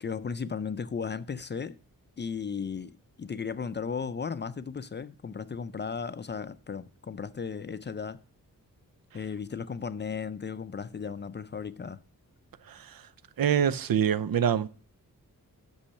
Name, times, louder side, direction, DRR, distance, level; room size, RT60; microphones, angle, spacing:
voice 1, 0.0-1.8 2.2-8.2 9.1-12.0, left 6 dB, 30° left, 0.4 m, -35 dB
voice 2, 12.7-13.0 13.4-14.7, right 8 dB, 75° right, 0.6 m, -25 dB
8.5 x 6.3 x 6.3 m
wide cardioid pair, 155°, 35 cm